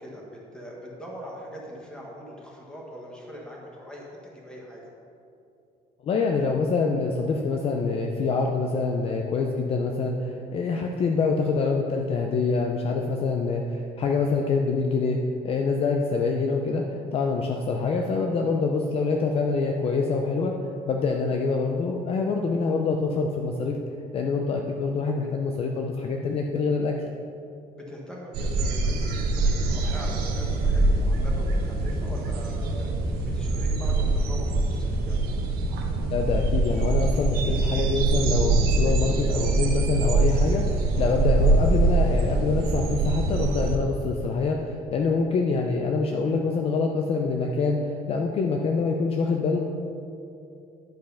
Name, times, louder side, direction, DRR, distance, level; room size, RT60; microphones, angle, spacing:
voice 1, 0.0-4.8 27.7-32.9 33.3-35.2, equal, 5° left, -3 dB, 1.4 m, -41 dB
voice 2, 6.0-15.2 15.4-20.5 20.9-23.8 24.1-27.0 36.1-49.6, left 4 dB, 40° left, 2 dB, 0.5 m, -25 dB
sound 1, 28.3-43.8, right 2 dB, 80° right, 1.1 m, -24 dB
10.5 x 5.3 x 5.6 m, 2.6 s
cardioid pair, 180°, 16 cm